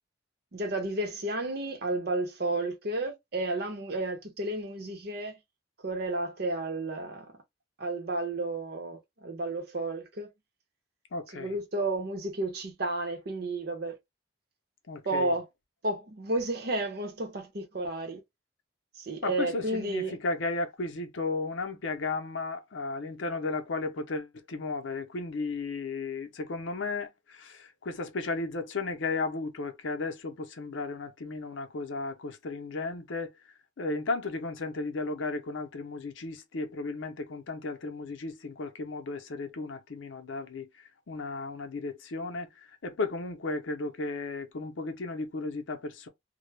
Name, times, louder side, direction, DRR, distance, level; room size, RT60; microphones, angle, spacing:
voice 1, 0.5-5.4 5.8-7.3 7.8-10.3 11.3-14.0 15.0-15.5 15.8-18.2 19.0-20.2, right 2 dB, 55° right, 0.7 m, -32 dB
voice 2, 11.1-11.6 14.9-15.3 19.2-33.3 33.8-46.1, left 3 dB, 90° left, 0.6 m, -34 dB
2.2 x 2.0 x 3.2 m
head